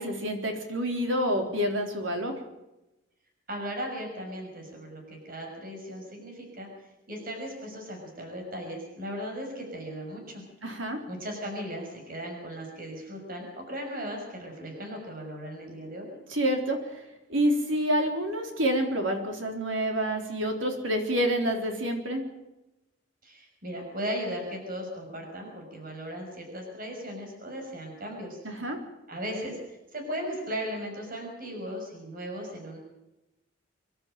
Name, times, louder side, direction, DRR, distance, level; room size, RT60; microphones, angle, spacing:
voice 1, 0.0-2.3 10.6-11.0 16.3-16.8 17.3-22.2 28.4-28.8, equal, 85° right, 3 dB, 3.9 m, -28 dB
voice 2, 3.5-6.7 7.1-10.4 11.1-16.1 23.2-28.4 29.1-29.6 29.9-32.8, equal, 50° right, 2 dB, 6.0 m, -37 dB
25.0 x 12.5 x 9.0 m, 0.95 s
head